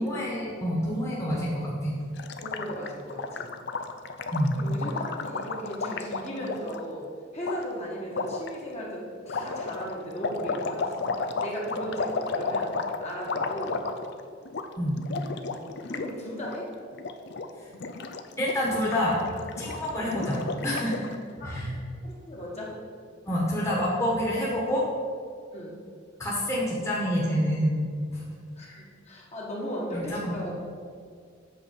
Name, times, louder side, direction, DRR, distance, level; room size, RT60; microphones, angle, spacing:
voice 1, 0.0-1.9 4.3-4.5 14.8-15.0 18.4-19.2 19.6-21.1 21.4-21.7 23.2-24.8 26.2-27.8 28.1-28.2 28.6-28.8 29.9-30.4, equal, 15° left, -6 dB, 1.5 m, -27 dB
Gurgling, 2.2-6.8 7.4-7.6 8.1-8.5 9.3-14.2 14.5-14.7 14.9-16.1 16.4-16.6 16.9-17.5 17.7-21.2, left 4 dB, 60° left, 0.5 m, -33 dB
voice 2, 2.4-3.5 4.5-7.0 7.3-11.1 11.4-13.9 15.9-16.7 20.0-20.1 21.4-21.5 22.0-22.8 25.5-25.8 28.6-30.6, equal, 35° left, -4 dB, 1.7 m, -36 dB
8.3 x 4.3 x 7.2 m, 2.1 s
head